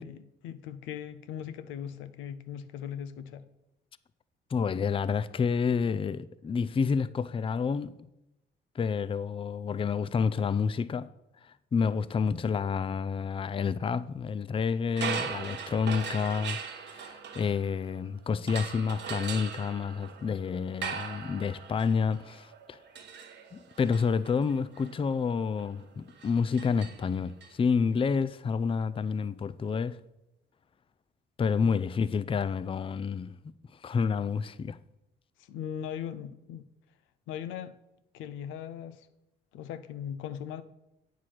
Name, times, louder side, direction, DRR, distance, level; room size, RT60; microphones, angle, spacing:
voice 1, 0.0-3.5 35.4-36.6 37.3-37.8 38.1-39.1 39.5-40.6, left 9 dB, 90° left, 0.5 m, -39 dB
voice 2, 4.5-7.9 8.8-11.1 11.4-16.6 16.8-22.8 23.5-30.0 31.4-33.4 33.8-34.8, left 5 dB, 25° left, 0.4 m, -29 dB
sound 1, 14.9-18.0 18.5-27.5, right 6 dB, 65° right, 1.0 m, -40 dB
8.4 x 4.7 x 5.9 m
supercardioid pair, 65°, 20 cm